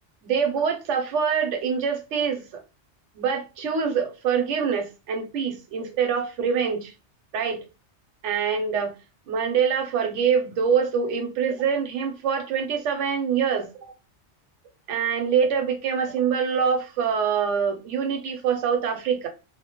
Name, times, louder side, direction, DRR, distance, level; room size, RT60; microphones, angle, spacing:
voice 1, 0.2-2.6 3.1-6.9 7.3-7.6 8.2-8.9 9.3-13.9 14.9-19.3, right 6 dB, 85° right, 0.9 m, -25 dB
2.1 x 2.1 x 2.8 m
omnidirectional pair, 1.2 m